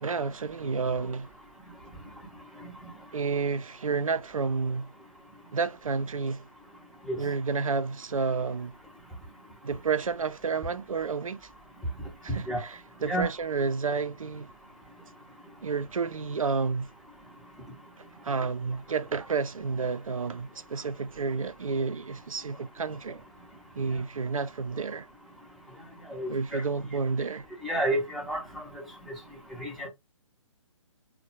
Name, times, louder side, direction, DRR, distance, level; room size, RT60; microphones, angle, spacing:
voice 1, 0.0-1.3 3.1-4.9 5.5-6.5 7.2-8.8 9.6-11.5 12.2-14.5 15.6-16.9 18.2-23.2 23.8-25.1 26.3-27.5, right 4 dB, 85° right, 0.4 m, -30 dB
voice 2, 26.1-26.6 27.6-28.6 29.6-29.9, right 1 dB, ahead, 0.5 m, -30 dB
3.5 x 2.1 x 2.7 m
figure-of-eight pair, 140°, 17 cm